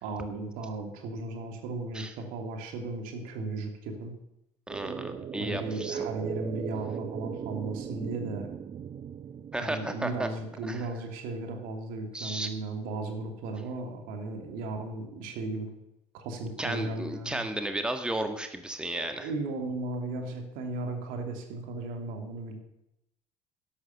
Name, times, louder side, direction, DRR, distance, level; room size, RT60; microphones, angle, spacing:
voice 1, 0.0-4.1 5.4-8.5 9.6-15.7 16.1-17.4 18.9-22.6, right 2 dB, 65° right, 4 dB, 2.8 m, -36 dB
voice 2, 4.7-6.0 9.5-10.3 10.6-10.9 12.1-12.5 16.6-19.3, right 1 dB, 5° right, 7 dB, 1.6 m, -33 dB
sound 1, 4.7-10.8, right 8 dB, 40° right, 0.8 m, -38 dB
12.0 x 11.0 x 6.7 m, 0.87 s
hypercardioid pair, 60°, 15 cm